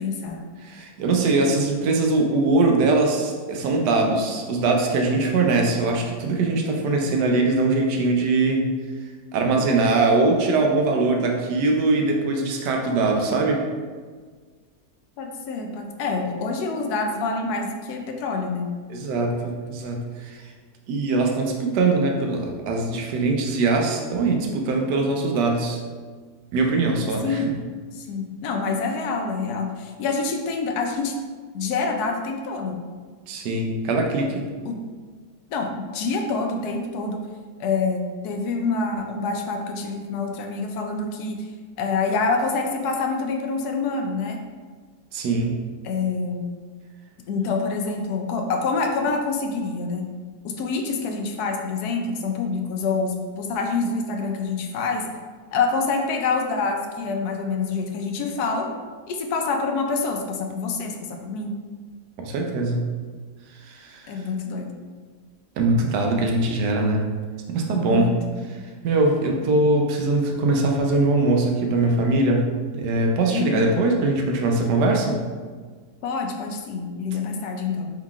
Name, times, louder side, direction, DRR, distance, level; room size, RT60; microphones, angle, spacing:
voice 1, 0.0-0.4 15.2-18.7 27.2-27.5 28.0-31.2 31.5-32.8 34.7-34.8 35.5-37.2 37.6-41.5 41.8-44.4 45.8-46.5 47.3-50.1 50.4-55.0 55.5-58.7 59.1-61.5 64.1-64.7 67.9-68.4 73.3-73.7 76.0-77.9, left 4 dB, 75° left, 3 dB, 1.1 m, -26 dB
voice 2, 0.6-8.7 9.3-13.6 18.9-20.4 20.9-25.8 26.5-27.4 33.3-34.4 45.1-45.6 62.2-62.9 63.6-64.1 65.6-67.1 67.5-68.2 68.8-75.2, right 2 dB, 90° right, 1 dB, 1.2 m, -22 dB
4.5 x 3.7 x 2.4 m, 1.5 s
omnidirectional pair, 1.7 m